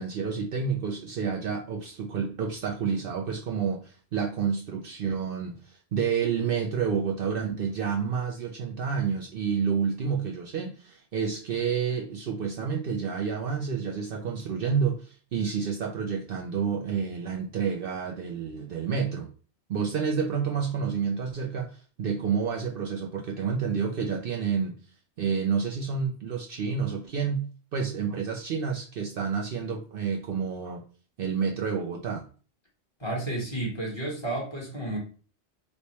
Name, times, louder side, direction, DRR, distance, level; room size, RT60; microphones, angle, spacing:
voice 1, 0.0-19.3 19.7-24.8 25.2-27.5 27.7-30.8 31.2-32.3, right 6 dB, 60° right, 0 dB, 0.7 m, -29 dB
voice 2, 33.0-35.0, right 2 dB, 25° left, -3 dB, 1.1 m, -31 dB
3.3 x 2.1 x 4.2 m, 0.39 s
omnidirectional pair, 1.2 m